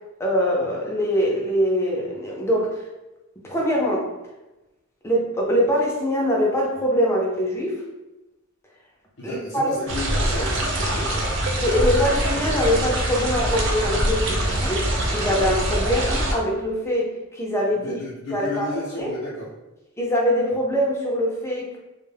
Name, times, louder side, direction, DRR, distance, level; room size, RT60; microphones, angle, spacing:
voice 1, 0.2-2.8 3.4-4.1 5.0-7.8 9.2-9.8 11.6-18.0 18.3-18.7 19.0-19.1 20.0-21.8, equal, 15° left, -3 dB, 0.5 m, -23 dB
voice 2, 9.2-11.3 17.7-19.5, left 1 dB, 65° left, -8 dB, 0.5 m, -32 dB
sound 1, 9.9-16.3, right 1 dB, 60° right, 0.4 m, -24 dB
2.1 x 2.0 x 3.3 m, 1.0 s
head